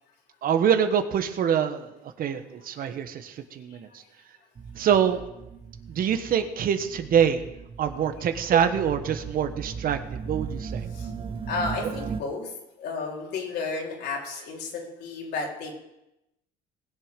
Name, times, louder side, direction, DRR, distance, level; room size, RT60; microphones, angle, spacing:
voice 1, 0.4-3.9 4.8-5.2 5.9-7.4 7.8-10.8 11.8-11.9, right 8 dB, 60° right, 8 dB, 1.3 m, -25 dB
sound 1, 4.6-12.2, right 6 dB, 35° right, 1.0 m, -37 dB
voice 2, 11.5-12.5 12.8-15.7, left 4 dB, 75° left, -1 dB, 4.0 m, -32 dB
20.0 x 7.3 x 5.3 m, 0.90 s
cardioid pair, 110°, 17 cm